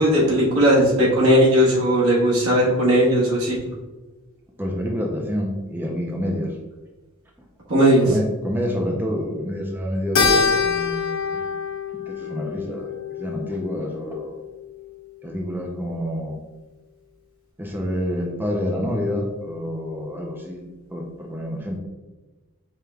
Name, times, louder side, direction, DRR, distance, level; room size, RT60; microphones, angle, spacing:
voice 1, 0.0-3.6 7.7-8.1, equal, 90° right, -5 dB, 1.3 m, -17 dB
voice 2, 4.6-6.5 8.0-11.6 11.9-12.9 13.1-14.4 15.2-16.4 17.6-21.8, equal, 10° right, 0 dB, 0.5 m, -28 dB
Keyboard (musical), 10.2-14.7, left 5 dB, 80° left, 0.7 m, -25 dB
4.9 x 3.2 x 2.3 m, 1.2 s
head